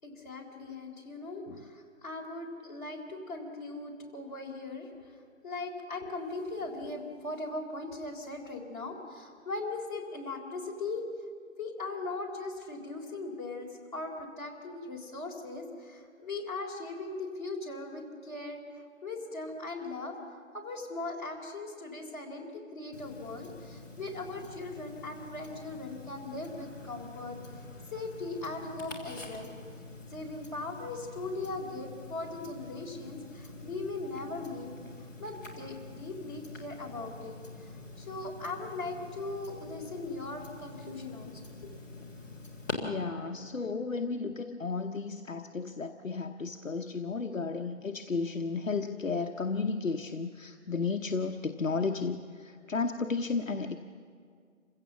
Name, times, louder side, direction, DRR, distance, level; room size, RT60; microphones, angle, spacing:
voice 1, 0.0-11.0 11.6-18.6 19.0-27.4 27.9-29.6 30.1-34.7 35.2-37.7 38.0-41.3 41.6-41.7, left 3 dB, 35° left, -3 dB, 3.7 m, -39 dB
Tick-tock, 22.9-42.7, left 3 dB, 15° left, 1.7 m, -46 dB
voice 2, 42.8-53.8, left 4 dB, 70° left, 5 dB, 1.0 m, -33 dB
27.5 x 16.0 x 7.2 m, 2.2 s
figure-of-eight pair, 170°, 41 cm